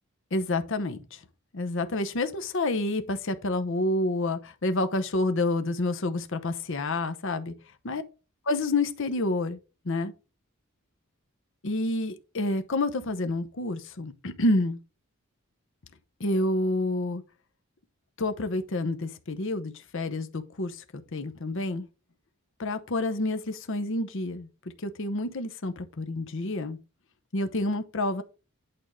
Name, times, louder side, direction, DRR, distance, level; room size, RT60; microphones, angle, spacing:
voice 1, 0.3-1.2 1.5-7.5 7.8-8.0 8.5-9.6 9.8-10.1 11.6-14.8 16.2-17.2 18.2-21.9 22.6-24.5 24.8-26.8 27.3-28.2, left 2 dB, 60° left, 0.8 m, -28 dB
8.8 x 3.6 x 5.0 m
head